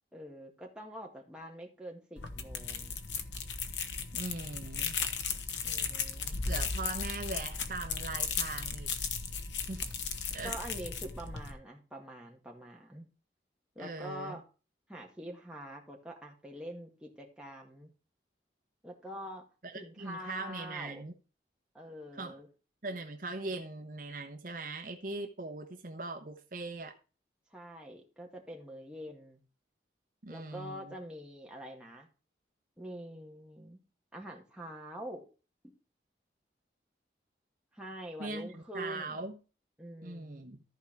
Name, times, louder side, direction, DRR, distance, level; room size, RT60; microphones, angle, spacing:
voice 1, 0.1-3.0 5.6-6.4 10.4-13.1 13.8-14.4 14.9-17.9 18.8-19.5 19.7-21.0 21.7-22.5 27.5-29.4 30.3-32.1 32.8-33.8 34.1-35.3 35.6-35.7 37.7-39.3 39.8-40.4, equal, 5° right, 1.9 m, -45 dB
sound 1, 2.2-11.5, left 5 dB, 85° left, 1.1 m, -36 dB
voice 2, 4.1-5.0 6.5-8.9 9.6-10.0 10.3-10.6 13.8-14.4 19.6-21.1 22.1-22.3 22.8-26.9 30.2-30.9 38.2-39.4 40.0-40.6, right 2 dB, 50° right, 1.0 m, -40 dB
14.0 x 4.8 x 4.5 m
head